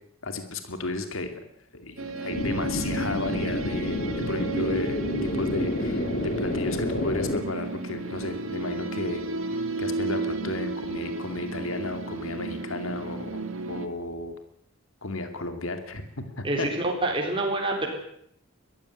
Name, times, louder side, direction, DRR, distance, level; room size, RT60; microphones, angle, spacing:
voice 1, 0.2-1.4 1.7-14.4 15.0-16.7, left 2 dB, 70° left, 7 dB, 2.5 m, -34 dB
sound 1, 2.0-13.9, right 3 dB, 75° right, 2.3 m, -33 dB
sound 2, 2.3-7.4, left 1 dB, 45° left, 2.1 m, -29 dB
voice 2, 17.0-17.9, right 2 dB, 25° right, 0 dB, 4.2 m, -26 dB
22.0 x 14.5 x 9.7 m, 0.73 s
head